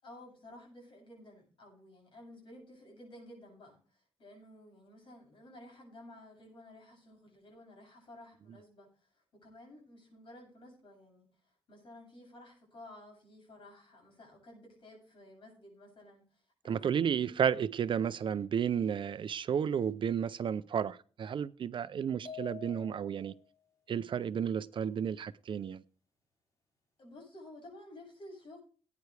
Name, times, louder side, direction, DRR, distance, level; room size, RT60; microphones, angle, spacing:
voice 1, 0.0-11.3 11.7-17.3 27.0-28.6, left 1 dB, 60° left, 7.7 m, -53 dB
voice 2, 16.6-23.3 23.9-25.8, right 8 dB, 55° right, 0.5 m, -32 dB
sound 1, 22.2-23.4, left 8 dB, 35° left, 4.5 m, -47 dB
19.0 x 9.4 x 3.3 m
wide cardioid pair, 160°, 10 cm